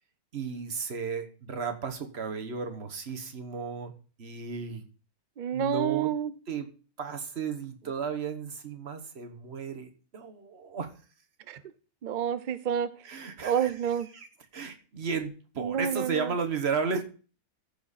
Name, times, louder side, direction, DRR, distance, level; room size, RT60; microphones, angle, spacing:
voice 1, 0.3-3.9 4.2-4.8 5.5-6.1 6.5-6.7 7.0-10.9 13.0-17.0, right 5 dB, 45° right, 6 dB, 1.4 m, -34 dB
voice 2, 5.4-6.3 11.5-11.6 12.0-12.9 13.4-14.1 15.6-16.3, right 8 dB, 70° right, 13 dB, 0.4 m, -28 dB
14.5 x 5.1 x 4.1 m, 0.37 s
omnidirectional pair, 1.6 m